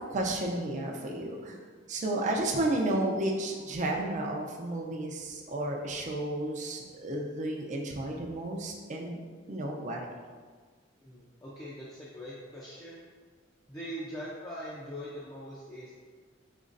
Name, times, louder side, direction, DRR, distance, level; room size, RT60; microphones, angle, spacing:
voice 1, 0.1-1.6 1.9-9.2 9.5-10.1, right 1 dB, 40° right, 0 dB, 0.5 m, -32 dB
voice 2, 11.0-13.0 13.7-15.9, equal, 20° left, -7 dB, 0.5 m, -42 dB
5.2 x 3.0 x 2.5 m, 1.5 s
head